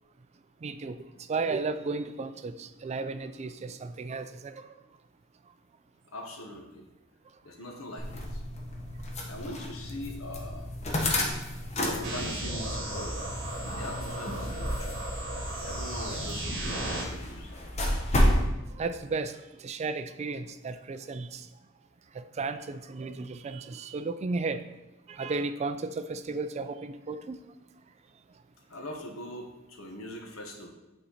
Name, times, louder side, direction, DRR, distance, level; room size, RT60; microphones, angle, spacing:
voice 1, 0.6-1.0 1.3-4.7 18.8-21.5 22.1-24.6 25.1-27.4, right 3 dB, 30° right, 11 dB, 0.3 m, -34 dB
voice 2, 6.1-6.9 7.4-8.4 9.3-10.7 12.0-13.2 13.7-14.9 15.6-17.6 28.7-30.7, left 1 dB, 70° left, 2 dB, 1.2 m, -41 dB
sound 1, 8.0-18.5, left 1 dB, 30° left, 1.1 m, -31 dB
sound 2, 12.0-17.0, right 1 dB, 55° right, 1.9 m, -35 dB
8.4 x 4.3 x 4.1 m, 1.0 s
head